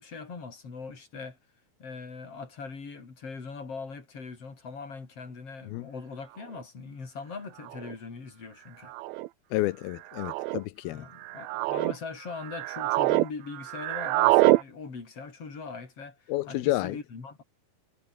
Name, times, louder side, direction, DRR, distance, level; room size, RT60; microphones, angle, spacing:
voice 1, 0.0-1.4 1.8-8.9 10.9-17.4, left 4 dB, 40° left, 5.6 m, -41 dB
sound 1, 6.6-6.7 7.7-8.0 8.9-9.3 10.1-10.6 11.2-11.9 12.4-13.3 13.5-14.6, right 19 dB, 90° right, 2.5 m, -25 dB
voice 2, 9.5-11.1 16.3-17.0, left 17 dB, 90° left, 2.8 m, -30 dB
omnidirectional pair, 4.2 m